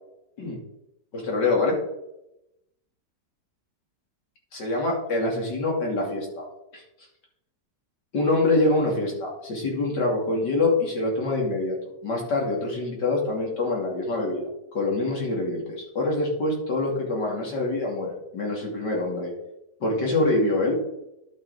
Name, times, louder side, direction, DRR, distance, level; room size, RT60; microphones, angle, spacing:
voice 1, 1.1-1.8 4.5-6.4 6.7-6.8 8.1-11.7 12.0-14.5 14.7-19.3 19.8-20.8, left 2 dB, 90° left, -2 dB, 3.4 m, -25 dB
11.0 x 6.8 x 5.0 m, 0.87 s
omnidirectional pair, 1.8 m